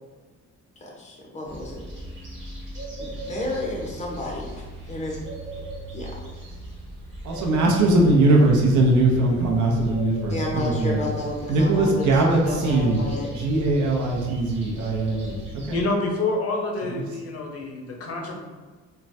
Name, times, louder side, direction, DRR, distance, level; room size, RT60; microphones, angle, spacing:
voice 1, 0.8-1.8 3.0-4.5 4.9-5.2 5.9-6.1 10.3-13.3, left 1 dB, 25° left, -3 dB, 0.9 m, -31 dB
sound 1, 1.4-15.8, right 1 dB, 40° right, 1.3 m, -38 dB
voice 2, 7.2-11.0 11.5-15.8 16.8-17.0, right 2 dB, 75° right, -1 dB, 0.7 m, -21 dB
voice 3, 15.7-18.4, left 2 dB, 50° left, 0 dB, 0.8 m, -27 dB
3.1 x 2.2 x 2.7 m, 1.4 s
cardioid pair, 90°, 30 cm